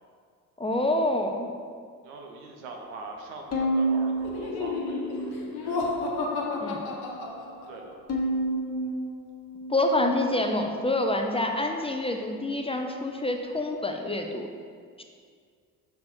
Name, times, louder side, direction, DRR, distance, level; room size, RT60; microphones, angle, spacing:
voice 1, 0.6-1.5 6.6-6.8 9.7-14.5 15.0-15.1, left 1 dB, 15° left, 3 dB, 0.5 m, -27 dB
voice 2, 2.0-5.9 7.7-7.9, right 3 dB, 75° right, 1 dB, 1.0 m, -42 dB
Bowed string instrument, 3.5-5.9 6.3-7.1 8.1-10.6, right 1 dB, 35° left, 1.1 m, -31 dB
Laughter, 4.2-7.9, left 3 dB, 60° left, 1.0 m, -32 dB
5.9 x 4.2 x 4.4 m, 2.1 s
hypercardioid pair, 50°, 42 cm